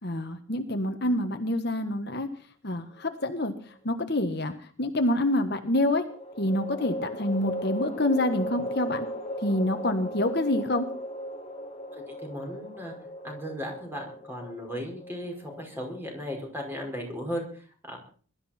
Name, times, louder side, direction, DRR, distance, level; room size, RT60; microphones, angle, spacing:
voice 1, 0.0-2.3 2.6-6.0 6.4-9.1 9.4-10.9, left 1 dB, 50° left, 6 dB, 1.5 m, -27 dB
sound 1, 3.0-3.8 6.0-17.3, equal, 30° left, 2.5 m, -37 dB
voice 2, 11.9-12.9 13.2-18.0, equal, 10° right, 1 dB, 5.3 m, -36 dB
22.0 x 13.0 x 4.4 m, 0.42 s
head